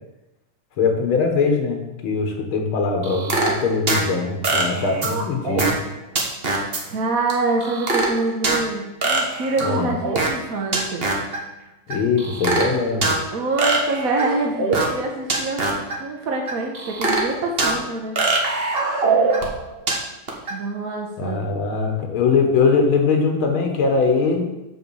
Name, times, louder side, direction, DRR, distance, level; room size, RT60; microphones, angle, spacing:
voice 1, 0.8-5.8 9.6-10.0 11.9-13.1 21.2-24.4, left 4 dB, 90° left, 3 dB, 2.2 m, -21 dB
sound 1, 3.0-4.0 4.4-5.9 6.2-6.8 7.3-7.4 7.6-8.6 9.0-10.5 10.7-11.4 11.9-13.2 13.6-15.0 15.3-15.9 16.5-17.8 18.2-19.9 20.3-20.5, right 3 dB, 35° right, 1.4 m, -22 dB
voice 2, 6.9-11.1 13.3-18.1 20.5-21.4, right 3 dB, 50° right, 1 dB, 1.3 m, -25 dB
6.9 x 5.5 x 7.1 m, 0.97 s
omnidirectional pair, 2.2 m